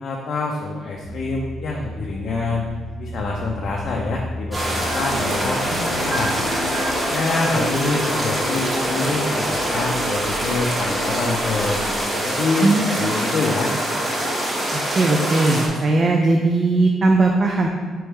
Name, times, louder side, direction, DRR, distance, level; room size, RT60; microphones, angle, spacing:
voice 1, 0.0-2.7 3.0-6.3 7.1-11.8 12.2-13.7, left 3 dB, 60° left, -2 dB, 0.4 m, -26 dB
sound 1, 0.9-12.0, equal, 5° right, 0.9 m, -37 dB
sound 2, 4.5-15.7, right 1 dB, 20° right, 1.2 m, -24 dB
sound 3, 4.5-9.9, equal, 65° right, 0.9 m, -30 dB
voice 2, 12.6-12.9 15.0-17.7, right 2 dB, 40° right, 1 dB, 0.4 m, -18 dB
3.3 x 3.1 x 4.5 m, 1.5 s
cardioid pair, 90°, 0 cm